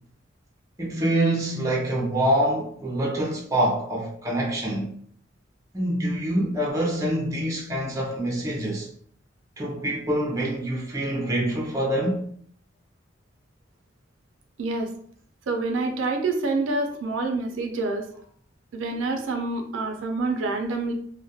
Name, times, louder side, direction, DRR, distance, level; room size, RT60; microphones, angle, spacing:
voice 1, 0.8-4.9 5.7-8.9 9.6-12.2, right 1 dB, 15° right, 0.5 m, -25 dB
voice 2, 14.6-14.9 15.5-18.1 18.7-20.9, right 3 dB, 80° right, 0.4 m, -27 dB
2.3 x 2.1 x 2.7 m
head